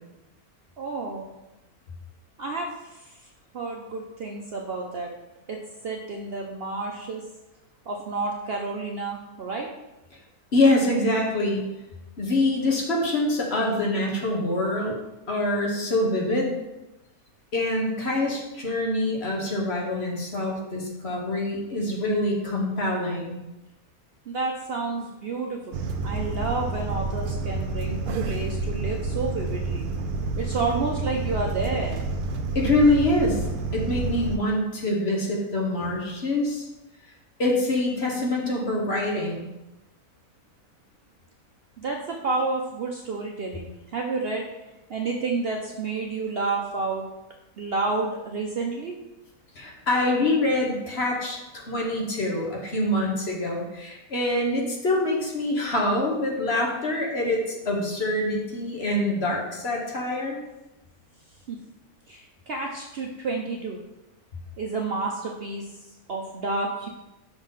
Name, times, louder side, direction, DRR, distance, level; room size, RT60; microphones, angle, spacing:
voice 1, 0.8-1.2 2.4-3.1 3.5-5.1 5.5-5.6 5.8-7.2 7.9-9.7 24.3-29.9 30.4-32.0 41.8-44.5 44.9-47.0 47.6-49.0 61.5-61.6 62.1-63.8 64.6-66.9, right 3 dB, 55° right, 1 dB, 0.7 m, -30 dB
voice 2, 10.5-11.7 12.2-15.0 15.3-16.6 17.5-23.4 32.5-33.4 33.7-36.7 37.4-39.4 49.5-60.4, left 1 dB, 45° left, -1 dB, 1.4 m, -25 dB
sound 1, 25.7-34.4, right 3 dB, 85° right, 1.2 m, -29 dB
6.0 x 4.0 x 5.5 m, 1.0 s
omnidirectional pair, 1.6 m